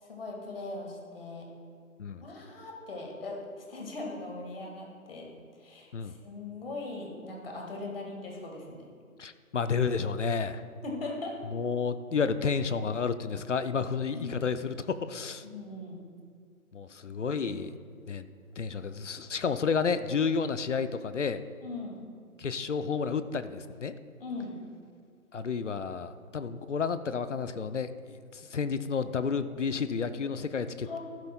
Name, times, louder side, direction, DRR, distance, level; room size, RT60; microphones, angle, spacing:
voice 1, 0.0-1.5 2.2-5.3 5.6-8.8 10.8-11.4 14.1-14.4 15.4-16.0 21.6-22.0 24.2-24.6 30.8-31.0, left 2 dB, 40° left, 0 dB, 1.8 m, -40 dB
voice 2, 9.2-10.6 11.5-15.5 16.7-17.8 18.1-18.3 18.6-21.4 22.4-23.9 25.3-31.0, left 5 dB, 55° left, 12 dB, 0.5 m, -31 dB
13.5 x 11.5 x 2.2 m, 2.2 s
figure-of-eight pair, 155°, 44 cm